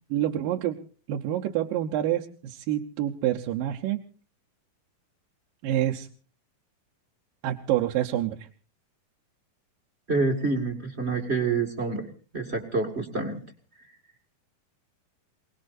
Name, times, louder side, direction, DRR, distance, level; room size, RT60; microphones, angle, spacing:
voice 1, 0.1-0.8 1.1-4.0 5.6-6.1 7.4-8.5, right 12 dB, 75° right, 1 dB, 2.5 m, -27 dB
voice 2, 10.1-13.4, right 3 dB, 25° right, 2 dB, 1.4 m, -27 dB
28.0 x 19.0 x 2.6 m, 0.39 s
omnidirectional pair, 4.2 m